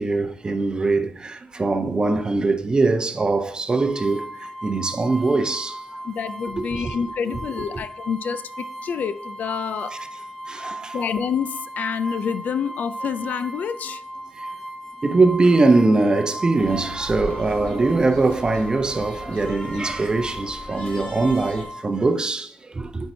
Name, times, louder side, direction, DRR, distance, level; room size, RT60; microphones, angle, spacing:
voice 1, 0.0-5.8 6.6-7.0 7.7-7.8 10.5-11.0 14.4-14.5 15.0-23.1, right 3 dB, 30° right, 0.6 m, -22 dB
sound 1, 3.8-21.8, right 1 dB, ahead, 1.1 m, -37 dB
voice 2, 6.0-9.9 10.9-14.0, left 7 dB, 70° left, 0.4 m, -27 dB
sound 2, 16.6-21.7, left 2 dB, 45° left, 1.8 m, -38 dB
8.3 x 4.5 x 2.7 m
cardioid pair, 85°, 3 cm